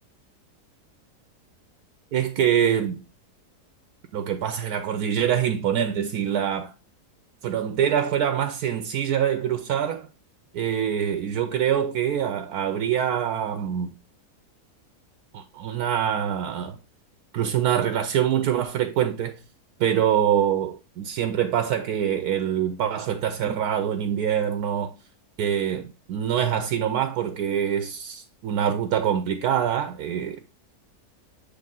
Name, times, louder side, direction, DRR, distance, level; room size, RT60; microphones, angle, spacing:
voice 1, 2.1-3.0 4.1-6.7 7.4-10.1 10.5-13.9 15.3-16.8 17.3-19.3 19.8-24.9 25.4-30.4, right 9 dB, 75° right, 1.1 m, -25 dB
7.8 x 3.3 x 3.7 m
omnidirectional pair, 1.7 m